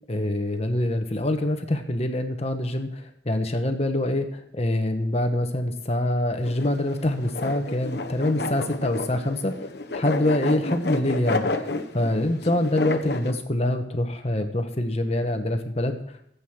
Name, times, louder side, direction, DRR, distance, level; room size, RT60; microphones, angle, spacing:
voice 1, 0.1-9.5 9.9-11.7 11.9-16.2, left 1 dB, 35° left, 6 dB, 1.3 m, -25 dB
sound 1, 6.4-13.3, left 3 dB, 60° left, 1.1 m, -31 dB
15.5 x 8.5 x 6.2 m, 0.73 s
head